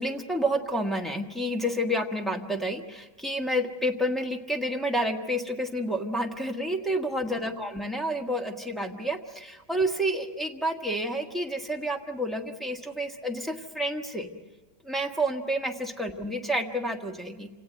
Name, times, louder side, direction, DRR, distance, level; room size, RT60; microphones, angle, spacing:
voice 1, 0.0-14.3 14.8-17.5, equal, ahead, 2 dB, 1.2 m, -29 dB
27.5 x 18.0 x 7.9 m, 1.2 s
omnidirectional pair, 2.1 m